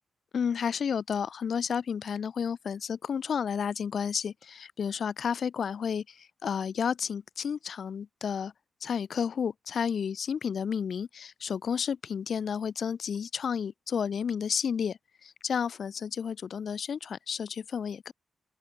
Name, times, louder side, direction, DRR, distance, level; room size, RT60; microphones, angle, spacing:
voice 1, 0.3-8.5 8.8-18.1, left 7 dB, 65° left, 6.9 m, -31 dB
open air
cardioid pair, 95°, 0 cm